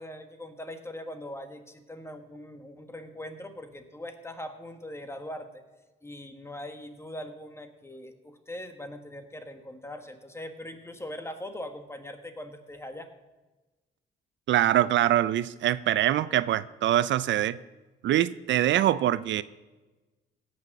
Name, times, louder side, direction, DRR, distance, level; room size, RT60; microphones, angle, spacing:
voice 1, 0.0-5.6 6.0-13.1, left 1 dB, 15° left, 8 dB, 1.5 m, -41 dB
voice 2, 14.5-17.6 18.0-19.4, right 12 dB, 70° right, 17 dB, 0.5 m, -24 dB
16.5 x 6.4 x 6.6 m, 1.2 s
cardioid pair, 90°, 20 cm